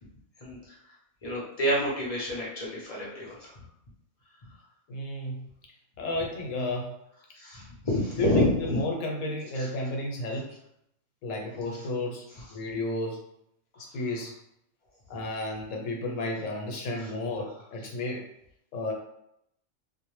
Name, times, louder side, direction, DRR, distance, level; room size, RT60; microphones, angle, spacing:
voice 1, 0.4-0.7 1.2-3.5 7.3-8.8 17.0-17.1, left 1 dB, 40° left, -4 dB, 0.6 m, -28 dB
voice 2, 4.9-5.5 6.0-6.9 8.2-10.6 11.2-13.2 13.8-14.3 15.1-18.2 18.7-18.9, left 2 dB, 80° left, 0 dB, 1.0 m, -32 dB
2.4 x 2.1 x 3.0 m, 0.77 s
omnidirectional pair, 1.3 m